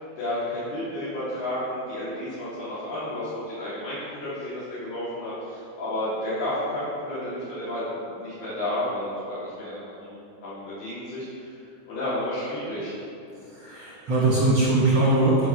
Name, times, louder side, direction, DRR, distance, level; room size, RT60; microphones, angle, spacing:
voice 1, 0.2-11.6 11.9-12.9, left 1 dB, 70° left, -12 dB, 4.0 m, -31 dB
voice 2, 13.3-15.5, right 2 dB, 55° right, -6 dB, 1.5 m, -21 dB
9.3 x 4.9 x 5.9 m, 2.7 s
omnidirectional pair, 4.1 m